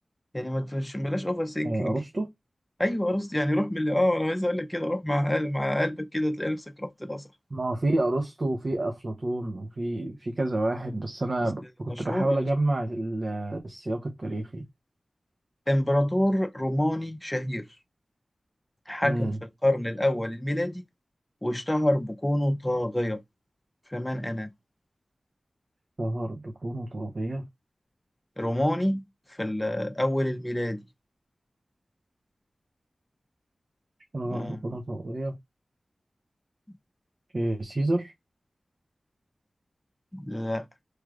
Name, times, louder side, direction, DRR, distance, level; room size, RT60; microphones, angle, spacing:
voice 1, 0.3-1.9 2.8-7.3 11.4-11.5 11.9-12.4 15.7-17.7 18.9-20.8 21.4-23.2 23.9-24.5 28.4-29.0 29.3-30.8 34.2-34.8 40.1-40.7, left 1 dB, 15° left, 0.7 m, -27 dB
voice 2, 1.6-2.3 7.5-14.7 19.0-19.4 26.0-27.4 34.1-35.3 37.3-38.1, right 2 dB, 55° right, 0.7 m, -29 dB
4.7 x 3.1 x 2.4 m
cardioid pair, 50°, 0 cm